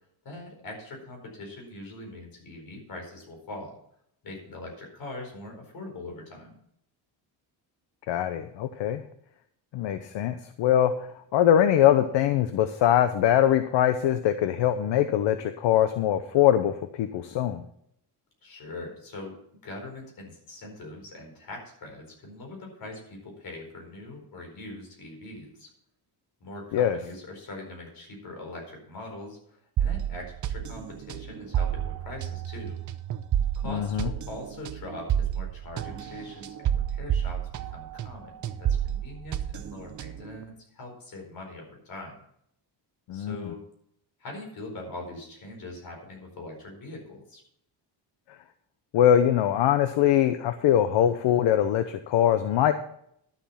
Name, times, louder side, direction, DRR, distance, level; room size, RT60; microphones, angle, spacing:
voice 1, 0.2-3.8 4.2-6.6 18.4-19.4 19.6-25.7 26.4-32.8 33.5-42.2 43.1-43.6 44.2-47.4, left 2 dB, 50° left, 1 dB, 4.6 m, -42 dB
voice 2, 8.1-9.0 9.7-17.6 26.7-27.0 33.7-34.1 43.1-43.5 48.9-52.7, left 10 dB, 75° left, 10 dB, 0.8 m, -22 dB
sound 1, 29.8-38.2 38.4-40.4, right 10 dB, 40° right, 0.7 m, -30 dB
12.0 x 7.3 x 5.7 m, 0.71 s
cardioid pair, 160°, 44 cm